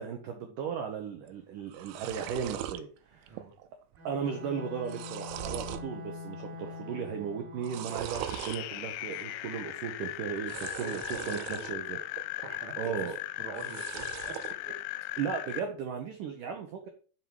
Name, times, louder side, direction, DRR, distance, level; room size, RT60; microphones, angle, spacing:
voice 1, 0.0-3.4 4.0-12.0 12.8-13.2 15.2-16.9, right 7 dB, 75° right, 5 dB, 2.0 m, -36 dB
sound 1, 1.3-1.4 1.6-2.8 3.3-3.7 3.9-4.0 4.6-5.9 6.3-6.8 7.5-8.6 10.4-11.7 12.2-12.8 13.5-14.5, right 11 dB, 90° right, 3.1 m, -40 dB
Bowed string instrument, 4.0-8.3, left 4 dB, 35° right, 2.1 m, -44 dB
sound 2, 7.9-15.6, left 16 dB, 85° left, 2.7 m, -38 dB
voice 2, 10.5-12.0 12.4-14.4 14.7-14.8, right 4 dB, 50° right, 4 dB, 1.6 m, -45 dB
11.0 x 5.9 x 4.7 m, 0.39 s
omnidirectional pair, 5.3 m